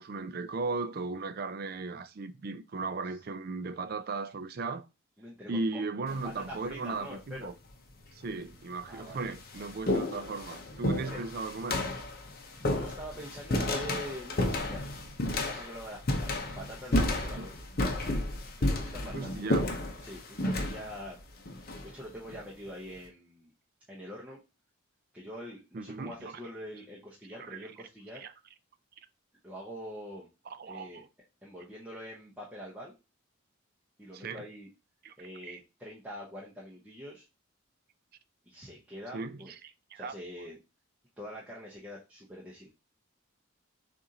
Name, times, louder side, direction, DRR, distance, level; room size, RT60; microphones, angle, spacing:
voice 1, 0.0-4.8 5.5-7.5 8.2-11.8 17.4-17.5 19.1-19.7 25.7-26.3 27.4-27.6 28.2-28.3 30.6-31.1 34.1-34.4 35.0-35.1 35.5-35.6 39.1-39.4 39.9-40.1, right 3 dB, 45° right, 0.4 m, -36 dB
voice 2, 5.2-5.8 6.1-7.5 8.9-9.4 11.0-11.2 12.6-14.8 15.2-17.7 18.6-19.3 20.0-21.2 21.8-23.5 23.9-24.4 25.1-28.2 29.4-30.3 30.6-31.0 31.4-32.9 34.0-34.7 35.2-37.2 38.5-39.5 39.9-40.6 41.2-42.7, equal, 5° right, 0.8 m, -44 dB
sound 1, 6.1-6.5 7.5-7.6 8.4-8.5 8.9-22.4, left 1 dB, 45° left, 0.7 m, -32 dB
6.8 x 2.6 x 2.8 m
head